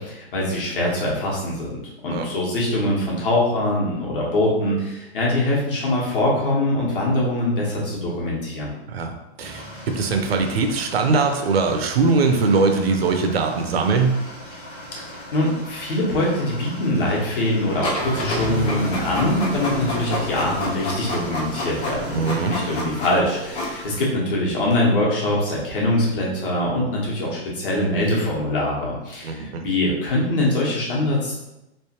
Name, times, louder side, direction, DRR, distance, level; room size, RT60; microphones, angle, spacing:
voice 1, 0.0-1.7 2.0-8.7 15.0-31.4, left 1 dB, 55° left, -4 dB, 1.2 m, -23 dB
sound 1, 9.4-22.8, right 1 dB, 5° left, 0.7 m, -36 dB
voice 2, 9.4-14.2 22.1-22.5 29.2-29.6, right 4 dB, 65° right, 5 dB, 0.6 m, -21 dB
Printer, 17.8-24.1, left 1 dB, 90° left, 1.4 m, -29 dB
3.3 x 3.0 x 2.9 m, 0.92 s
hypercardioid pair, 180°, 33 cm